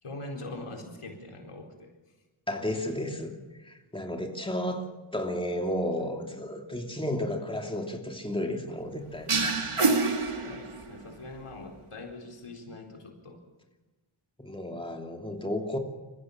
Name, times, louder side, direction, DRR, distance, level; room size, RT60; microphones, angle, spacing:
voice 1, 0.0-1.9 9.7-13.4, left 2 dB, 90° left, 2 dB, 4.3 m, -43 dB
voice 2, 2.5-3.3 3.6-4.9 5.1-9.3 14.4-15.8, left 1 dB, 10° left, 3 dB, 2.8 m, -32 dB
sound 1, 9.3-11.1, right 3 dB, 80° right, 2.5 m, -26 dB
27.5 x 15.5 x 7.2 m, 1.2 s
wide cardioid pair, 75°, 50 cm